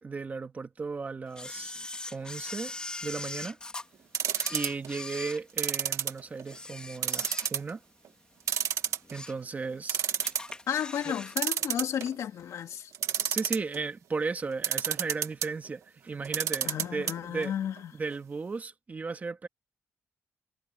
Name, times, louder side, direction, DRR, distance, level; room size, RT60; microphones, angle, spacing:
voice 1, 0.0-1.7 2.1-2.7 3.0-3.6 4.5-7.8 9.1-10.0 11.1-11.2 13.2-17.5 17.9-19.5, right 4 dB, 30° right, 2.1 m, -35 dB
Camera, 1.4-3.9 4.3-6.0 6.4-7.8 8.2-8.3 8.8-9.5 9.8-9.9 10.2-11.4 11.6-11.7, left 2 dB, 15° left, 3.3 m, -41 dB
sound 1, 4.1-4.9 5.6-6.5 7.0-7.7 8.0-8.1 8.5-9.3 9.6-9.7 9.9-10.5 11.4-12.2 12.9-13.8 14.6-15.5 16.2-17.1 17.4-17.5 17.8-17.9, right 9 dB, 85° right, 1.8 m, -29 dB
voice 2, 10.7-12.9 16.6-17.9, left 9 dB, 90° left, 2.6 m, -33 dB
wide cardioid pair, 135°, 5 cm